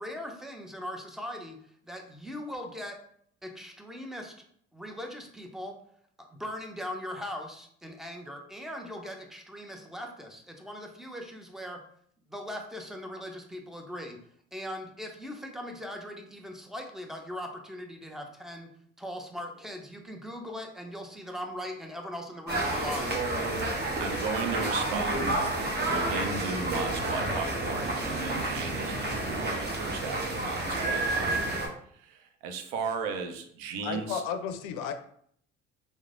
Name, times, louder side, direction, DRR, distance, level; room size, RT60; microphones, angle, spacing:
voice 1, 0.0-1.6 1.8-3.0 3.4-4.3 4.7-5.7 6.2-11.8 12.3-14.2 14.5-18.7 19.0-23.2, equal, ahead, 0.5 m, -40 dB
sound 1, 22.5-31.7, right 2 dB, 30° right, 0.8 m, -30 dB
voice 2, 23.6-25.5 25.8-31.7 31.9-34.2, right 5 dB, 70° right, 0.6 m, -36 dB
voice 3, 33.8-34.9, left 7 dB, 60° left, 0.5 m, -33 dB
3.0 x 2.0 x 2.4 m
hypercardioid pair, 65°, 35 cm